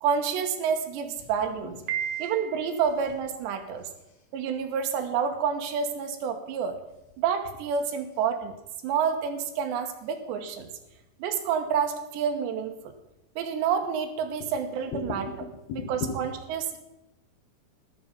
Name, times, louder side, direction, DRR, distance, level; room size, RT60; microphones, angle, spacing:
voice 1, 0.0-1.8 2.2-3.9 4.3-6.8 7.2-8.5 8.8-10.7 11.2-12.9 13.4-15.3 15.8-16.8, right 7 dB, 90° right, 5 dB, 3.4 m, -28 dB
voice 2, 1.6-2.2 14.4-14.5 14.9-16.2, left 4 dB, 70° left, 1 dB, 3.2 m, -36 dB
Piano, 1.9-2.9, right 9 dB, 50° right, 2.7 m, -33 dB
12.5 x 11.0 x 5.3 m, 0.91 s
omnidirectional pair, 4.9 m